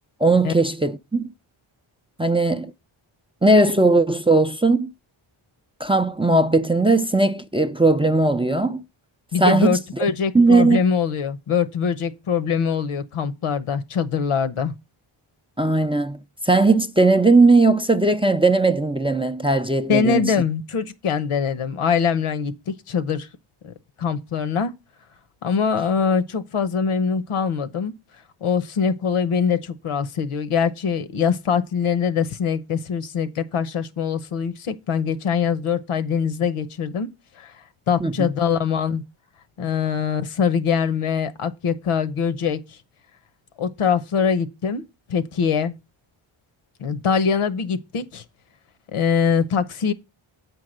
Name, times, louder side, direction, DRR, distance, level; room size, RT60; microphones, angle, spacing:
voice 1, 0.2-1.3 2.2-2.7 3.4-4.9 5.8-8.8 9.4-10.8 15.6-20.3 38.0-38.3, right 2 dB, 10° right, 0.4 m, -18 dB
voice 2, 9.3-14.7 19.9-23.3 23.6-24.7 25.4-27.9 28.4-37.1 37.4-37.5 37.9-39.0 39.6-42.8 43.6-44.8 45.1-45.7 46.8-48.2 48.9-49.9, left 6 dB, 90° left, 0.9 m, -23 dB
8.2 x 4.7 x 6.5 m
wide cardioid pair, 105°, 50 cm